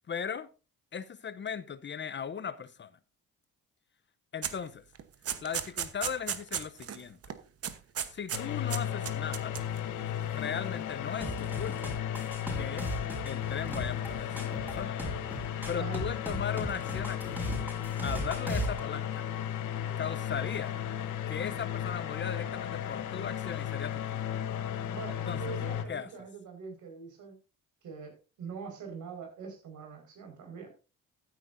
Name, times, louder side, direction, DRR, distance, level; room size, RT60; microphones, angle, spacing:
voice 1, 0.1-0.5 0.9-2.9 4.3-4.8 5.4-7.2 8.1-9.5 10.3-11.9 12.5-12.9 13.2-15.0 15.7-17.6 18.0-19.2 20.0-20.7 21.3-24.3 25.2-25.5 25.9-26.1, left 7 dB, 40° left, 0.7 m, -38 dB
sound 1, 4.4-4.6 5.0-7.0 7.2-7.4 7.6-8.4 8.7-9.8, right 8 dB, 50° right, 1.1 m, -35 dB
sound 2, 8.3-25.8, left 10 dB, 80° left, 1.2 m, -35 dB
sound 3, 11.2-18.8, right 1 dB, 5° right, 4.5 m, -38 dB
voice 2, 15.7-16.0 24.9-27.4 27.8-30.7, right 5 dB, 80° right, 5.0 m, -43 dB
14.5 x 9.3 x 2.6 m
cardioid pair, 90°, 30 cm